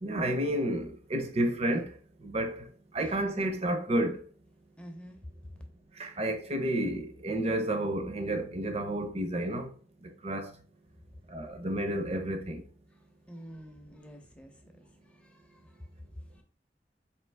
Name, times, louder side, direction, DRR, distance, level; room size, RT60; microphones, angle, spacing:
voice 1, 0.0-1.9 2.2-2.6 2.9-4.2 6.0-9.7 10.0-10.5 11.3-12.6, right 1 dB, 35° right, 0.7 m, -31 dB
voice 2, 4.8-5.5 13.3-15.9 16.3-16.4, equal, 5° left, 0.6 m, -49 dB
4.4 x 2.9 x 3.3 m
head